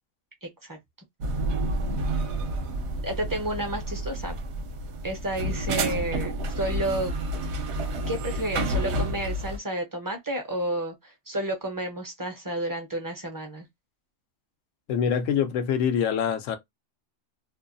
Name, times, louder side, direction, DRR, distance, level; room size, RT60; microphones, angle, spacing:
voice 1, 0.4-0.8 3.0-4.3 5.0-7.1 8.1-13.7, right 1 dB, 20° right, 0.5 m, -31 dB
sound 1, 1.2-9.6, right 1 dB, 65° right, 0.9 m, -29 dB
voice 2, 14.9-16.6, left 8 dB, 85° left, 0.9 m, -25 dB
2.5 x 2.3 x 2.5 m
omnidirectional pair, 1.3 m